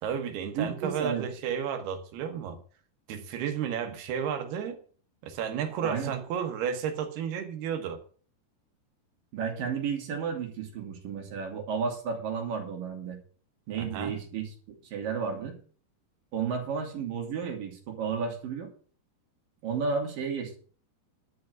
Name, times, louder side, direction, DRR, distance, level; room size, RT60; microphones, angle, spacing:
voice 1, 0.0-2.6 3.1-4.8 5.2-8.0 13.8-14.1, right 8 dB, 70° right, 3.1 m, -32 dB
voice 2, 0.6-1.3 5.8-6.1 9.3-13.2 13.7-14.5 14.8-15.6 16.3-18.7 19.6-20.6, right 6 dB, 55° right, 3.8 m, -32 dB
11.5 x 5.8 x 7.8 m
omnidirectional pair, 4.9 m